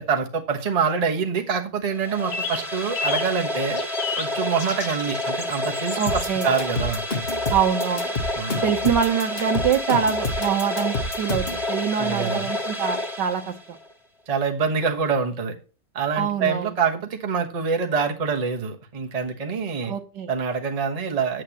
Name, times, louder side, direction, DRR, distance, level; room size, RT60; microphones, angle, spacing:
voice 1, 0.0-3.8 4.2-7.0 8.4-8.6 12.0-12.5 14.3-15.5 15.9-19.9 20.3-21.4, right 5 dB, 25° right, 3 dB, 0.9 m, -25 dB
sound 1, 1.9-13.9, left 1 dB, ahead, 1.8 m, -29 dB
sound 2, 2.3-2.6 2.9-3.3 3.8-4.3 4.6-6.2, left 6 dB, 70° left, 2.0 m, -31 dB
voice 2, 6.0-6.5 7.5-8.1 8.6-13.5 16.1-16.7 19.8-20.3, right 8 dB, 65° right, 8 dB, 1.3 m, -24 dB
sound 3, 6.1-11.6, left 2 dB, 35° left, 1.3 m, -29 dB
9.2 x 8.4 x 2.9 m, 0.35 s
omnidirectional pair, 2.2 m